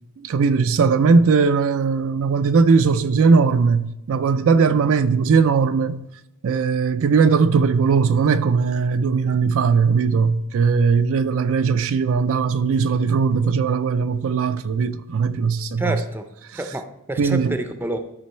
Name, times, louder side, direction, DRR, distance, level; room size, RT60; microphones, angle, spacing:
voice 1, 0.2-6.1 6.4-16.0 17.2-17.5, right 5 dB, 65° right, 0.4 m, -19 dB
voice 2, 15.8-16.3 16.5-18.0, right 1 dB, 10° right, 0.5 m, -28 dB
12.5 x 5.2 x 4.3 m
head